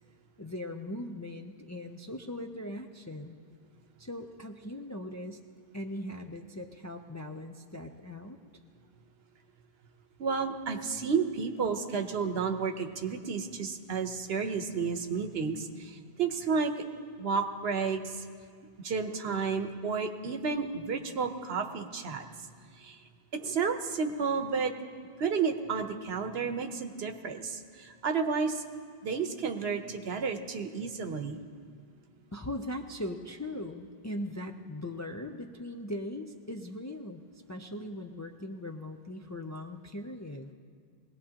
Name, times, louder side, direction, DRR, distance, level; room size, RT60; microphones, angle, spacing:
voice 1, 0.4-3.4 4.0-5.4 5.7-8.4 32.3-37.2 37.5-40.5, left 1 dB, 25° left, 4 dB, 0.4 m, -39 dB
voice 2, 10.2-16.7 17.2-18.2 18.8-22.2 22.8-23.0 23.3-24.7 25.2-28.6 29.0-31.4, right 5 dB, 75° right, 6 dB, 1.1 m, -31 dB
21.0 x 17.5 x 2.9 m, 2.1 s
omnidirectional pair, 1.0 m